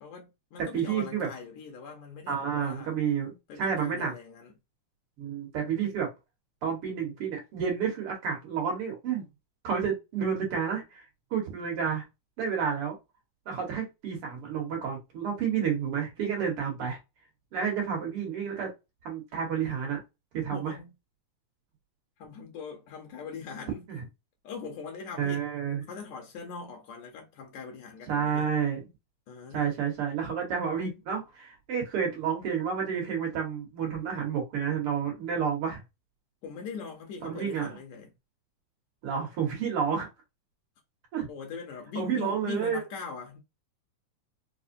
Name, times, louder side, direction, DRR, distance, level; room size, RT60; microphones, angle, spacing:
voice 1, 0.0-3.0 3.5-4.5 20.5-20.9 22.2-23.8 24.4-25.4 25.9-28.5 29.3-29.8 36.4-38.1 41.3-43.4, left 5 dB, 80° left, 2.1 m, -41 dB
voice 2, 0.6-1.3 2.3-3.3 3.6-4.1 5.2-6.1 6.6-9.2 9.6-11.1 11.3-12.0 12.4-13.0 13.5-17.0 17.5-18.7 19.0-20.0 20.3-20.8 23.9-24.0 25.2-25.8 28.1-28.9 29.5-35.8 37.2-37.7 39.0-40.1 41.1-41.3 42.0-42.8, right 7 dB, 55° right, 1.9 m, -30 dB
5.1 x 2.1 x 2.6 m
omnidirectional pair, 3.3 m